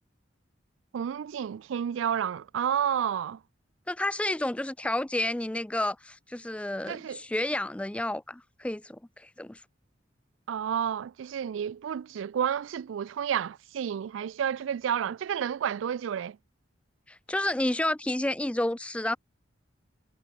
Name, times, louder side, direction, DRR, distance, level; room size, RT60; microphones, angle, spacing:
voice 1, 0.9-3.4 6.9-7.2 10.5-16.4, right 8 dB, 90° right, 0.3 m, -30 dB
voice 2, 3.9-9.6 17.1-19.2, left 1 dB, 5° left, 0.3 m, -30 dB
head